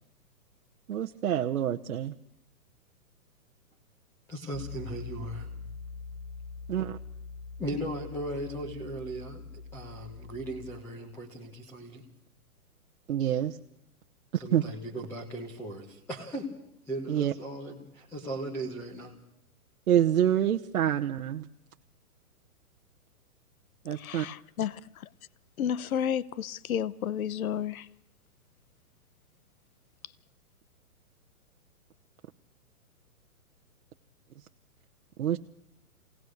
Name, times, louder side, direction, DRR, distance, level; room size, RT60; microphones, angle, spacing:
voice 1, 0.9-2.1 6.7-7.0 13.1-13.6 14.5-14.6 17.1-17.3 19.9-21.5 23.8-24.3 35.2-35.4, right 10 dB, 65° right, 1.0 m, -26 dB
voice 2, 4.3-5.5 7.6-9.5 9.7-12.0 14.3-16.5 16.9-19.1, right 1 dB, 5° left, 1.3 m, -37 dB
Piano, 4.5-10.8, left 4 dB, 25° left, 0.8 m, -43 dB
voice 3, 23.9-25.1 25.6-27.9, left 9 dB, 65° left, 0.9 m, -32 dB
24.0 x 18.0 x 6.5 m
hypercardioid pair, 170°, 45 cm